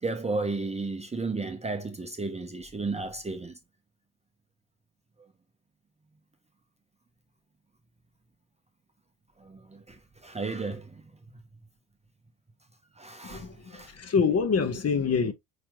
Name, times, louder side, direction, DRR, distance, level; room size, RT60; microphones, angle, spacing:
voice 1, 0.0-3.6 9.4-11.0 13.0-13.9, right 3 dB, 15° right, 0.7 m, -33 dB
voice 2, 13.2-15.3, left 5 dB, 30° left, 0.9 m, -26 dB
4.9 x 4.3 x 2.3 m
hypercardioid pair, 65°, 48 cm